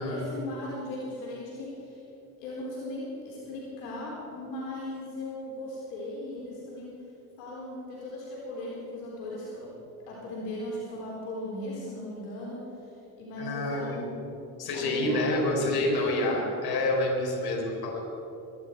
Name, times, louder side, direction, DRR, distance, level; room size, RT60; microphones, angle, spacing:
voice 1, 0.0-2.0 2.4-6.9 7.4-9.7 10.1-12.6 13.2-14.2 14.7-16.4, left 1 dB, 65° left, -5 dB, 3.9 m, -38 dB
voice 2, 13.4-14.0 14.6-18.0, left 1 dB, 50° left, -1 dB, 4.4 m, -28 dB
22.5 x 11.0 x 4.6 m, 2.9 s
hypercardioid pair, 60°, 48 cm